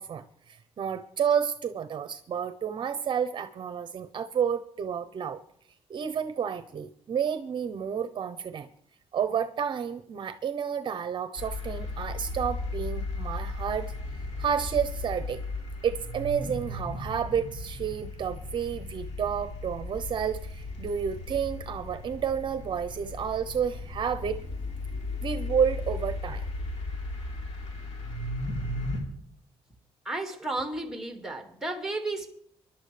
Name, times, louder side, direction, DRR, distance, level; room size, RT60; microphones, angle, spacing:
voice 1, 0.0-5.4 5.9-8.7 9.1-13.9 14.4-15.4 15.8-24.4 25.2-26.4, right 7 dB, 50° right, 0.7 m, -30 dB
sound 1, 11.4-29.0, left 2 dB, 85° left, 3.9 m, -36 dB
voice 2, 30.1-32.3, right 2 dB, 5° right, 2.1 m, -33 dB
25.0 x 11.5 x 3.3 m
cardioid pair, 115°, 11 cm